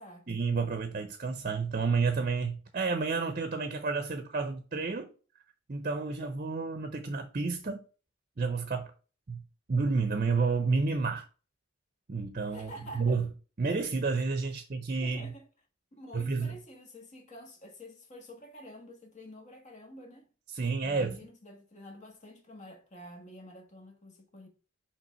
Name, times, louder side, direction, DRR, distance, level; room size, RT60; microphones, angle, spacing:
voice 1, 0.3-5.1 5.7-7.8 8.4-8.9 9.3-9.4 9.7-11.3 12.1-13.3 13.6-15.3 16.1-16.5 20.5-21.2, right 4 dB, 45° right, 0.7 m, -30 dB
voice 2, 12.5-13.2 15.0-15.5 16.0-20.3 20.8-24.5, equal, 40° left, 1.4 m, -49 dB
5.7 x 3.4 x 5.5 m
head